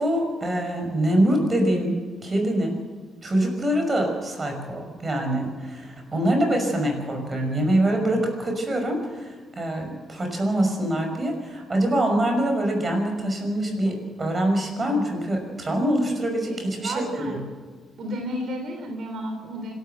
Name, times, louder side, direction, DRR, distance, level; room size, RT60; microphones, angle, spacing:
voice 1, 0.0-2.0 2.2-2.8 3.2-17.4, right 1 dB, 25° right, 3 dB, 5.8 m, -24 dB
voice 2, 16.4-17.4 18.0-19.7, equal, 60° right, 4 dB, 3.2 m, -32 dB
26.5 x 13.0 x 7.9 m, 1.4 s
cardioid pair, 130°, 0 cm